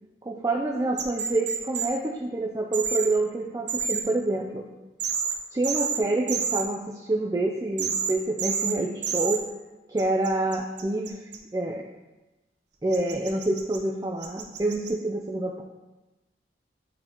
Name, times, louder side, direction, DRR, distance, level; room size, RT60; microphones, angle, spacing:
voice 1, 0.2-4.7 5.5-9.4 9.9-11.3 11.5-11.8 12.8-15.6, right 2 dB, 20° right, 1 dB, 0.3 m, -27 dB
sound 1, 1.0-1.9 2.7-3.1 3.7-4.0 5.0-5.3 5.6-6.0 6.3-6.6 7.8-8.1 8.4-8.7 9.0-9.4 10.0-11.4 12.9-13.8 14.2-14.9, right 6 dB, 80° right, 0.8 m, -28 dB
8.9 x 4.0 x 2.9 m, 1.1 s
head